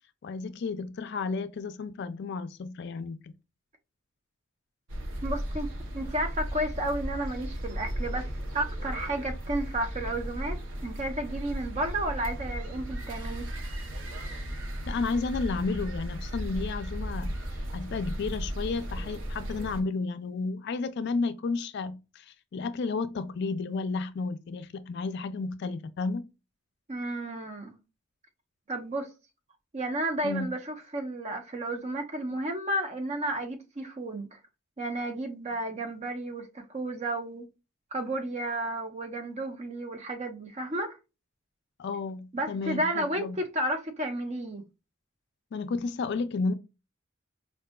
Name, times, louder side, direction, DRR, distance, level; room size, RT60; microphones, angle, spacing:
voice 1, 0.2-3.3 14.9-17.4 17.7-26.3 30.2-30.5 41.8-43.4 45.5-46.5, left 4 dB, 55° left, 0.3 m, -32 dB
sound 1, 4.9-19.8, equal, 65° right, 0.7 m, -35 dB
voice 2, 5.2-13.5 26.9-27.7 28.7-29.1 29.7-34.4 34.8-37.5 37.9-41.0 42.3-44.6, right 1 dB, 35° right, 0.6 m, -32 dB
4.7 x 2.6 x 2.2 m
head